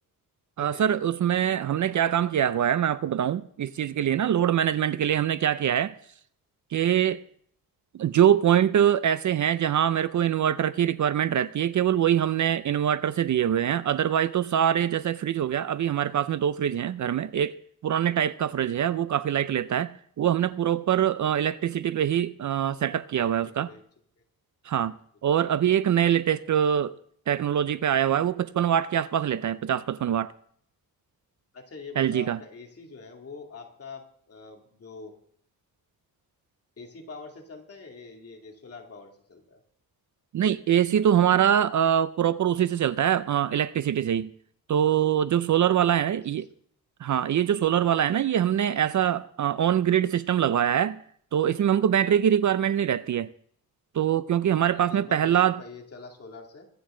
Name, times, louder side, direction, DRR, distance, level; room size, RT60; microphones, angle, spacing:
voice 1, 0.6-5.9 6.7-7.2 7.9-17.6 17.8-23.7 24.7-25.0 25.2-27.0 27.3-30.3 32.0-32.4 40.3-44.3 44.7-46.5 47.0-51.0 51.3-53.3 53.9-55.6, right 10 dB, 55° right, 0.5 m, -24 dB
voice 2, 23.4-23.8 25.3-25.4 31.5-35.1 36.8-39.6 54.6-56.7, left 4 dB, 40° left, 2.5 m, -45 dB
24.0 x 9.4 x 3.8 m
wide cardioid pair, 175°, 37 cm